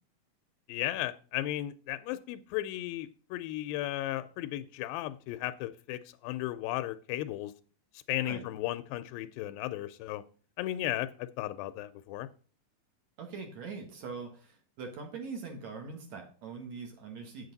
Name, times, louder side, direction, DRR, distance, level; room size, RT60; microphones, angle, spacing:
voice 1, 0.7-7.5 7.9-10.2 10.6-12.3, left 14 dB, 90° left, 12 dB, 2.3 m, -35 dB
voice 2, 13.2-17.5, right 4 dB, 60° right, 3 dB, 2.5 m, -42 dB
8.4 x 7.9 x 3.9 m, 0.40 s
omnidirectional pair, 4.1 m